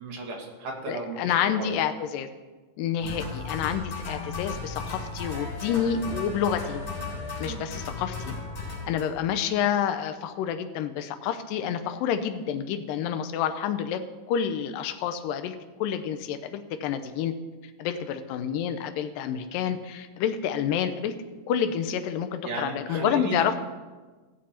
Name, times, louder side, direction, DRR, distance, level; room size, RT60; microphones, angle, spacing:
voice 1, 0.0-1.7 3.0-3.2 7.4-7.6 22.4-23.4, right 3 dB, 65° right, 0 dB, 3.0 m, -35 dB
voice 2, 0.9-2.3 2.8-6.8 7.4-8.3 8.9-14.0 14.3-15.6 15.8-17.3 17.8-21.1 21.5-23.6, left 8 dB, 85° left, 8 dB, 2.3 m, -28 dB
sound 1, 3.0-9.0, left 4 dB, 40° left, 4.6 m, -35 dB
16.0 x 7.4 x 4.3 m, 1.3 s
omnidirectional pair, 3.8 m